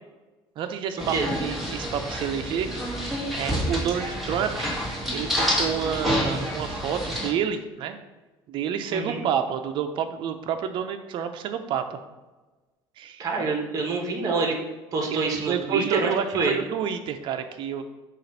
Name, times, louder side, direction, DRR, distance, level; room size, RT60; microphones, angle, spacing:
voice 1, 0.6-4.7 5.1-8.0 8.5-12.0 13.0-13.5 15.1-17.8, right 8 dB, 50° right, 7 dB, 0.6 m, -29 dB
sound 1, 1.0-7.3, equal, ahead, 1.5 m, -28 dB
voice 2, 8.9-9.2 13.2-14.5 14.9-16.5, right 4 dB, 35° right, 2 dB, 1.2 m, -26 dB
7.5 x 2.5 x 5.4 m, 1.2 s
cardioid pair, 140°, 10 cm